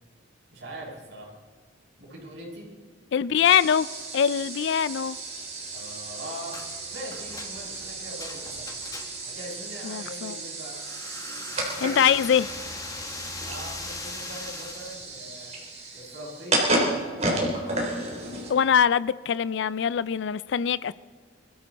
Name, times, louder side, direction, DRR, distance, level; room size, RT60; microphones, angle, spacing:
voice 1, 0.5-1.3 2.0-2.7 5.7-6.6 6.9-8.7 9.2-10.8 13.4-15.5 15.9-17.3, equal, 65° right, 5.9 m, -41 dB
voice 2, 3.1-3.9 4.1-5.2 9.8-10.4 11.8-12.5 18.5-20.9, left 8 dB, 65° left, 0.4 m, -23 dB
sound 1, 3.4-18.8, right 2 dB, 35° right, 3.5 m, -33 dB
sound 2, 6.5-6.7 7.1-9.4 10.8-15.0, left 3 dB, 20° left, 1.3 m, -40 dB
23.5 x 13.5 x 4.1 m
head